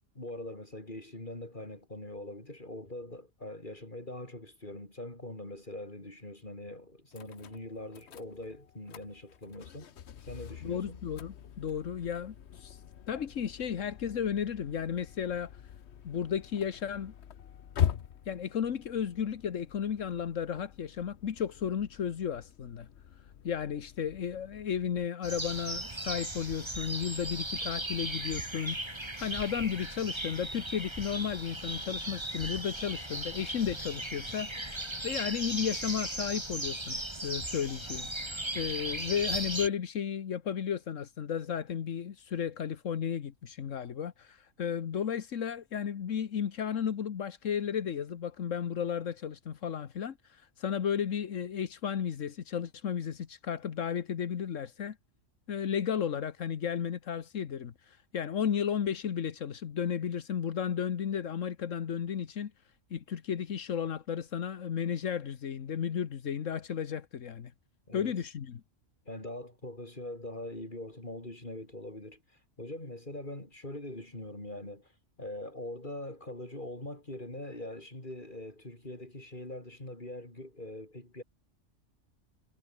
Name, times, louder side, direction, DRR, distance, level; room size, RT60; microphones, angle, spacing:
voice 1, 0.1-10.0 10.2-11.0 67.9-68.1 69.1-74.9 75.2-81.2, left 1 dB, 40° left, 6.2 m, -43 dB
sound 1, 7.1-25.1, left 9 dB, 65° left, 1.1 m, -42 dB
voice 2, 10.6-12.8 13.1-15.6 16.0-17.1 18.3-22.9 23.4-55.0 55.5-62.5 62.9-67.5 67.9-68.6, left 8 dB, 85° left, 1.5 m, -34 dB
sound 2, 25.2-39.7, right 1 dB, 20° right, 3.5 m, -37 dB
omnidirectional pair, 1.3 m